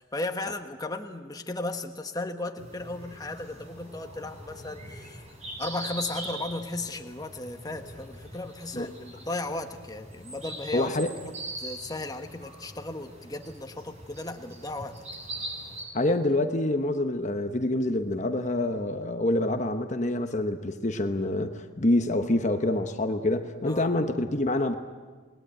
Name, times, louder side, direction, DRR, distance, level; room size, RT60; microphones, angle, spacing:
voice 1, 0.0-5.3 5.6-11.0 11.3-15.1 23.7-23.9, left 2 dB, 20° left, 6 dB, 1.4 m, -35 dB
sound 1, 2.6-15.8, right 1 dB, 35° right, 7.8 m, -42 dB
voice 2, 10.7-11.1 15.9-24.7, left 1 dB, 35° left, 6 dB, 1.1 m, -26 dB
28.5 x 20.5 x 9.1 m, 1.5 s
head